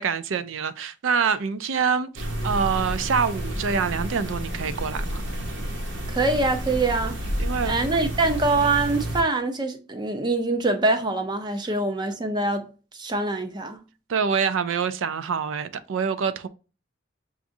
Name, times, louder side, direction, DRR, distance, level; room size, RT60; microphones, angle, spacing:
voice 1, 0.0-5.2 7.4-7.8 14.1-16.5, right 6 dB, 90° right, 0.4 m, -26 dB
sound 1, 2.2-9.2, equal, 70° right, 1.1 m, -30 dB
voice 2, 6.1-7.2 7.6-13.8, right 2 dB, 25° right, 0.5 m, -24 dB
5.9 x 2.5 x 2.6 m
head